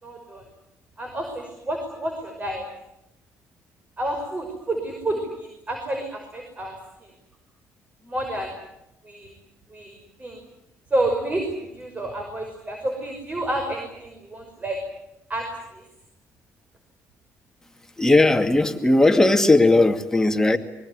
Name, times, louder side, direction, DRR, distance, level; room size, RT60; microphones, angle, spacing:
voice 1, 0.0-0.4 1.0-2.7 4.0-7.1 8.0-8.5 9.0-9.3 9.7-10.4 10.9-14.8 15.3-15.8, right 1 dB, 25° right, 5.8 m, -30 dB
voice 2, 18.0-20.6, left 2 dB, 10° left, 2.3 m, -17 dB
24.0 x 22.0 x 9.6 m
cardioid pair, 95°, 6 cm